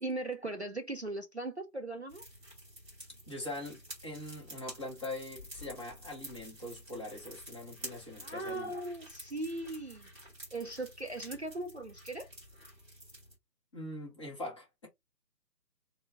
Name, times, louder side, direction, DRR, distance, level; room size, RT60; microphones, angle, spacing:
voice 1, 0.0-2.2 8.2-10.1 10.5-12.3, right 2 dB, 45° right, 0.5 m, -38 dB
sound 1, 2.1-13.3, equal, 5° right, 1.3 m, -50 dB
voice 2, 3.3-8.7 13.7-14.9, left 1 dB, 20° left, 0.9 m, -42 dB
4.0 x 2.2 x 3.5 m
figure-of-eight pair, 145°, 49 cm